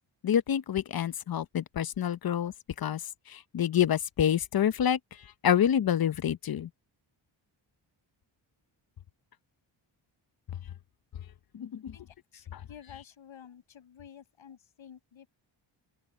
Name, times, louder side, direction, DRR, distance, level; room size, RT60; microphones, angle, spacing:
voice 1, 0.2-5.0 5.4-6.7 11.5-12.0 12.5-12.6, left 9 dB, 50° left, 0.8 m, -27 dB
voice 2, 11.9-15.3, left 8 dB, 70° left, 6.1 m, -51 dB
open air
cardioid pair, 110°, 48 cm